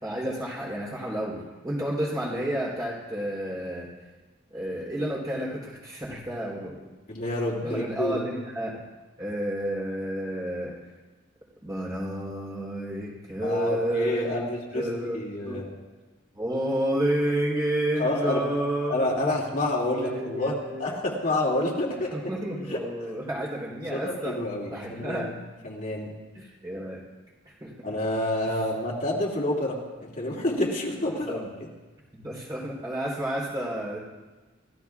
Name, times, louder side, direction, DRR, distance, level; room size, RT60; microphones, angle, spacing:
voice 1, 0.0-1.4 1.6-3.9 4.5-6.8 7.6-8.8 9.2-10.8 11.6-15.2 15.5-15.6 16.3-19.4 19.9-20.9 21.9-24.4 24.7-25.3 26.3-27.0 27.5-27.9 31.0-31.5 32.1-34.0, right 1 dB, 20° right, -5 dB, 3.8 m, -30 dB
voice 2, 7.1-8.4 13.4-14.9 15.1-15.7 18.0-18.6 18.9-22.1 22.7-22.8 23.9-25.3 25.6-26.1 27.8-31.4, left 1 dB, 45° left, -4 dB, 2.7 m, -28 dB
29.5 x 15.5 x 2.4 m, 1.2 s
head